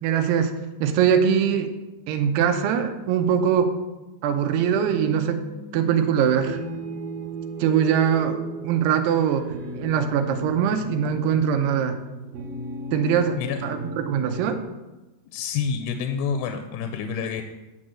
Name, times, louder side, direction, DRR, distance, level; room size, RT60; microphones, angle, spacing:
voice 1, 0.0-0.5 0.8-1.7 2.1-3.7 4.2-5.4 5.7-6.6 7.6-8.4 8.6-9.4 9.8-12.0 12.9-14.6, right 8 dB, 85° right, 6 dB, 2.7 m, -22 dB
sound 1, 4.7-14.6, right 1 dB, 70° right, 2.8 m, -36 dB
voice 2, 15.3-17.4, left 6 dB, 90° left, 7 dB, 2.8 m, -28 dB
7.9 x 6.4 x 7.5 m, 1.1 s
omnidirectional pair, 4.7 m